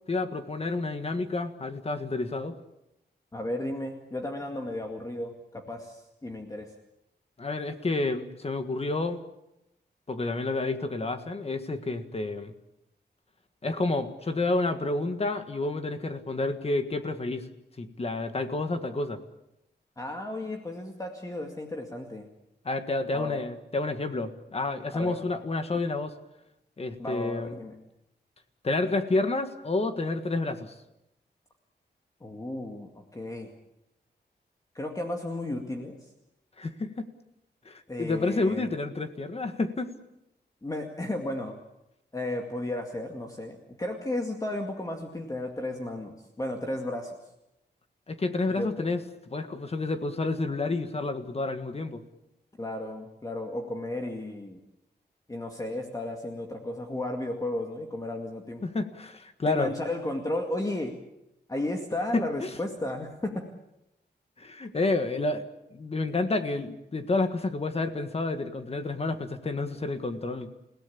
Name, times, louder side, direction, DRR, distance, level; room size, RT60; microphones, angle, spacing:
voice 1, 0.1-2.5 7.4-9.2 10.1-12.5 13.6-17.5 17.8-19.2 22.6-26.1 26.8-27.6 28.6-30.7 36.6-37.1 37.6-39.9 48.1-49.0 49.3-52.0 58.6-59.7 62.1-62.5 64.4-65.4 65.7-70.5, left 2 dB, 35° left, 8 dB, 1.7 m, -29 dB
voice 2, 3.3-6.7 20.0-22.3 23.1-23.4 24.9-25.2 27.0-27.8 32.2-33.5 34.7-36.0 37.9-38.7 40.6-41.5 42.1-47.1 48.6-48.9 52.6-54.6 55.3-58.6 59.5-61.0 61.5-63.5, left 1 dB, 20° left, 2 dB, 2.2 m, -34 dB
29.0 x 17.5 x 8.6 m, 0.88 s
wide cardioid pair, 155°, 18 cm